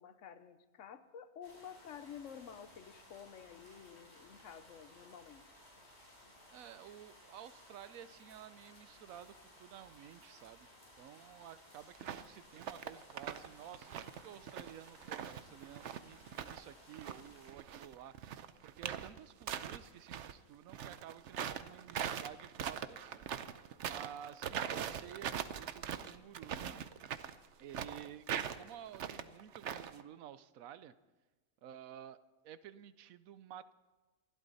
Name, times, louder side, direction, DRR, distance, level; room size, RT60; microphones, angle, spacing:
voice 1, 0.0-5.4, left 8 dB, 70° left, 11 dB, 1.2 m, -51 dB
sound 1, 1.4-17.5, left 1 dB, 30° left, 5.2 m, -60 dB
voice 2, 6.5-10.7 11.0-26.8 27.6-28.3 28.6-30.9 31.6-32.2 32.4-33.7, right 10 dB, 90° right, 15 dB, 1.1 m, -53 dB
sound 2, 12.0-12.3 12.6-13.5 13.7-16.6 16.9-20.3 20.7-30.0, right 9 dB, 65° right, 1.0 m, -41 dB
27.5 x 12.0 x 4.1 m, 1.2 s
omnidirectional pair, 1.4 m